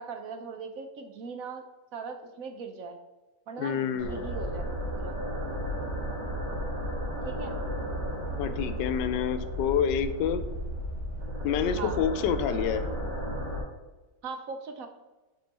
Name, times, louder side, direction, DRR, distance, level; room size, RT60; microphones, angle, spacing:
voice 1, 0.0-1.6 1.9-3.0 3.5-5.2 7.2-7.6 11.8-12.0 14.2-14.9, right 4 dB, 60° right, 6 dB, 1.0 m, -39 dB
voice 2, 3.6-4.3 8.3-10.4 11.4-12.8, left 8 dB, 85° left, 12 dB, 1.3 m, -28 dB
sound 1, 4.0-13.6, equal, 75° right, 3.0 m, -33 dB
9.3 x 4.5 x 4.1 m, 1.1 s
omnidirectional pair, 1.8 m